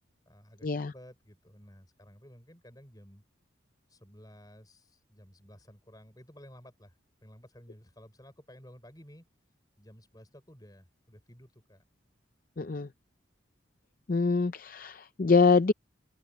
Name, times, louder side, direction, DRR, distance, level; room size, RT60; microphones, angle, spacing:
voice 1, 0.3-3.2 3.9-6.9 7.2-9.3 9.8-11.8, equal, 20° left, 5.4 m, -54 dB
voice 2, 12.6-12.9 14.1-15.7, left 4 dB, 45° left, 0.5 m, -24 dB
open air
head